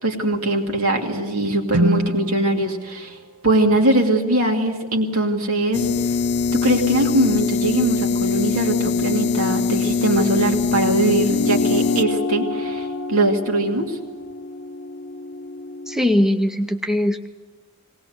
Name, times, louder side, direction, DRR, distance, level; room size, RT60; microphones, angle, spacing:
voice 1, 0.0-3.2 3.4-5.8 6.5-14.0, right 1 dB, 65° right, 2 dB, 2.5 m, -21 dB
Guitar, 1.7-4.3, right 1 dB, 85° right, 0.7 m, -27 dB
sound 1, 5.7-12.0, left 5 dB, 50° left, 0.6 m, -22 dB
sound 2, 11.3-16.1, left 2 dB, 85° left, 0.9 m, -27 dB
voice 2, 15.9-17.3, left 1 dB, ahead, 7 dB, 0.6 m, -20 dB
19.5 x 18.5 x 8.0 m, 1.4 s
head